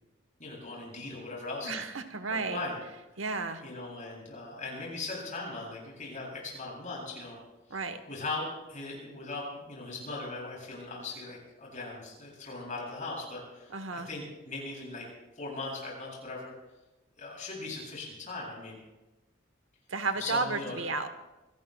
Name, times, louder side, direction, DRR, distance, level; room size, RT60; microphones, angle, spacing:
voice 1, 0.4-1.8 2.3-2.8 3.6-7.4 7.7-7.8 8.1-15.1 15.4-16.5 17.2-18.8 20.2-20.8, left 3 dB, 40° left, -3 dB, 7.1 m, -39 dB
voice 2, 1.6-2.6 3.2-3.6 7.7-8.0 13.7-14.1 19.9-21.1, right 3 dB, 75° right, 9 dB, 1.0 m, -32 dB
26.0 x 18.0 x 2.3 m, 1.0 s
head